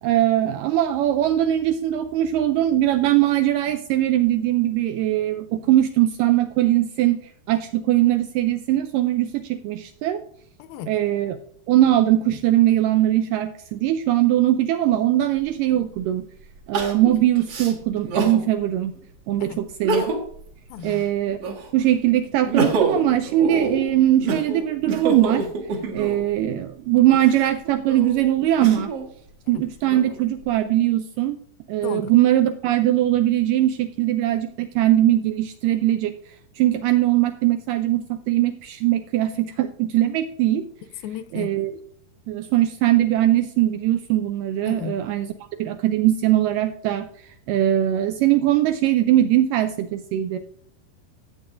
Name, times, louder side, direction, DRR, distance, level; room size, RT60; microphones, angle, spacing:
voice 1, 0.0-7.2 7.5-10.2 10.9-11.4 11.7-16.2 16.7-18.9 19.3-20.1 20.8-21.4 21.7-25.5 25.9-28.9 29.5-31.4 31.7-36.2 36.6-40.7 41.3-41.7 42.3-45.3 45.6-47.1 47.5-50.4, right 13 dB, 80° right, 1.9 m, -21 dB
Crying sobbing, 15.4-15.5 16.7-18.4 18.9-19.0 19.7-20.4 20.8-21.8 22.3-26.3 27.0-29.1 29.6-30.4, right 3 dB, 50° right, 2.1 m, -27 dB
voice 2, 20.7-21.0 29.5-29.6 31.8-32.1 41.0-41.5 44.7-44.9, left 9 dB, 80° left, 2.3 m, -34 dB
15.0 x 8.0 x 2.6 m
omnidirectional pair, 4.3 m